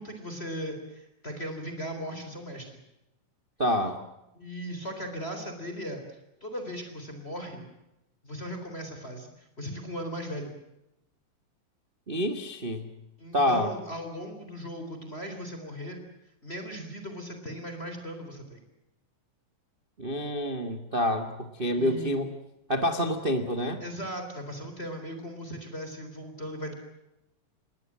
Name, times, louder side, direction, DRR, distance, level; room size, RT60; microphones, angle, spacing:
voice 1, 0.0-2.8 4.4-7.7 8.2-10.5 13.2-16.0 16.4-18.6 21.7-22.1 23.8-26.7, equal, 15° left, 5 dB, 3.8 m, -38 dB
voice 2, 3.6-4.0 12.1-12.9 13.3-13.7 20.0-22.3 22.7-23.8, equal, 40° right, 7 dB, 0.7 m, -27 dB
26.5 x 21.0 x 7.5 m, 0.90 s
omnidirectional pair, 4.0 m